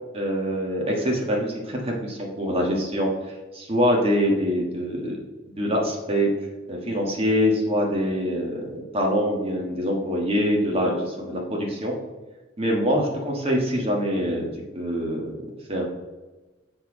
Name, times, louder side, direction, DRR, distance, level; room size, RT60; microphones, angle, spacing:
voice 1, 0.1-3.1 3.5-5.2 5.6-6.3 6.7-11.9 12.6-14.5 14.7-15.2 15.7-15.9, equal, 30° right, 0 dB, 1.4 m, -24 dB
6.8 x 4.5 x 4.9 m, 1.2 s
head